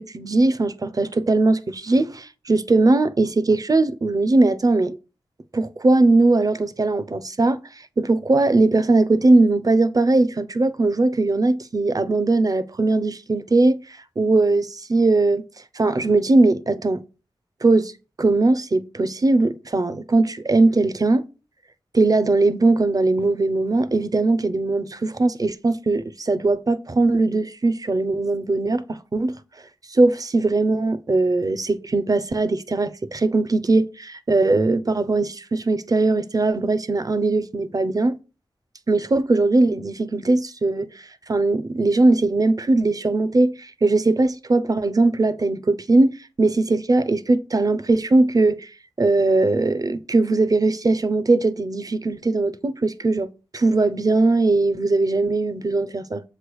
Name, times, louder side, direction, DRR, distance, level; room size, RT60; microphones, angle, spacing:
voice 1, 0.0-5.0 5.5-7.6 8.0-15.4 15.7-17.0 17.6-17.9 18.2-21.2 21.9-29.3 29.9-38.2 38.9-48.7 49.0-53.3 53.5-56.2, right 2 dB, 40° right, 0.7 m, -20 dB
7.6 x 3.4 x 6.2 m
cardioid pair, 55°, 10 cm